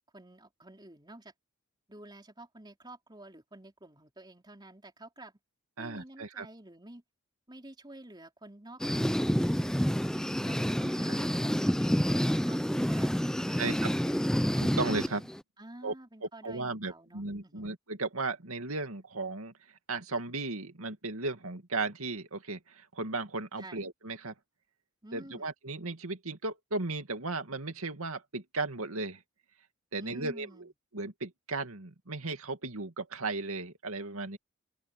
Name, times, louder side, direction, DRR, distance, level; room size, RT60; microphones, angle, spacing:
voice 1, 0.1-1.3 1.9-5.4 5.8-7.0 7.5-9.8 10.1-14.3 15.6-17.7 23.6-23.8 25.0-25.5 30.0-30.7, right 1 dB, 20° right, 3.8 m, -50 dB
voice 2, 5.8-6.5 10.8-11.2 13.6-13.9 14.6-15.3 15.8-15.9 16.4-19.5 19.9-24.3 25.1-29.2 29.9-30.7 30.9-34.4, right 3 dB, 85° right, 2.4 m, -36 dB
sound 1, 8.8-15.4, equal, 5° left, 0.6 m, -28 dB
open air
head